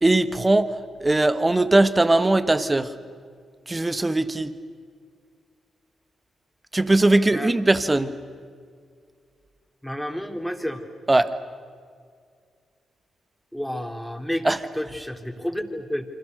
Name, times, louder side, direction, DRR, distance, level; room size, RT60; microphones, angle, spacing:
voice 1, 0.0-2.9 3.7-4.5 6.7-8.1 11.1-11.3 14.4-14.6, right 2 dB, 25° right, 12 dB, 1.7 m, -20 dB
voice 2, 9.8-10.8 13.5-14.5 14.7-16.0, equal, 5° left, 4 dB, 3.7 m, -30 dB
28.5 x 25.5 x 6.8 m, 2.1 s
hypercardioid pair, 40°, 0 cm